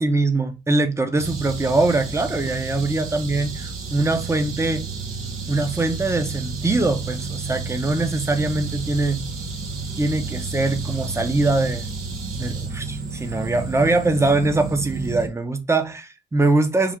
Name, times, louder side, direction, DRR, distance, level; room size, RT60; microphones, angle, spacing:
voice 1, 0.0-4.9 5.5-9.2 10.0-11.9 12.3-16.9, right 2 dB, 15° right, 0.6 m, -22 dB
sound 1, 1.2-15.3, right 4 dB, 90° right, 1.0 m, -31 dB
3.1 x 2.3 x 3.5 m
cardioid pair, 90°, 20 cm